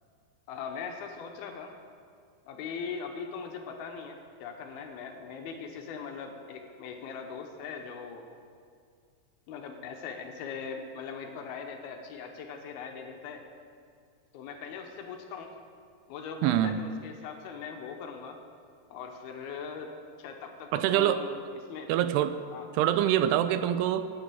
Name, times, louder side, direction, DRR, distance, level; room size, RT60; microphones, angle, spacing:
voice 1, 0.5-1.7 2.5-8.2 9.5-13.4 14.3-15.5 16.1-18.4 18.9-21.4 21.7-21.9 22.5-22.7, left 6 dB, 80° left, 4 dB, 2.8 m, -40 dB
voice 2, 16.4-16.9 20.7-21.2 21.9-22.4 22.7-24.1, right 11 dB, 85° right, 12 dB, 2.6 m, -25 dB
10.0 x 8.5 x 9.0 m, 2.2 s
omnidirectional pair, 4.7 m